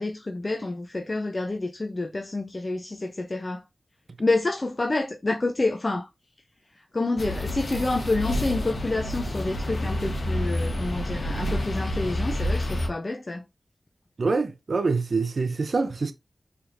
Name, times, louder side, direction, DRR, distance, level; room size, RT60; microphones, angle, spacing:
voice 1, 0.0-3.6 4.2-6.1 6.9-13.5, left 2 dB, 45° left, 0.5 m, -28 dB
sound 1, 7.2-12.9, left 1 dB, 75° left, 1.2 m, -28 dB
voice 2, 14.2-16.1, right 4 dB, 70° right, 0.5 m, -25 dB
4.5 x 3.3 x 2.5 m
cardioid pair, 45°, 0 cm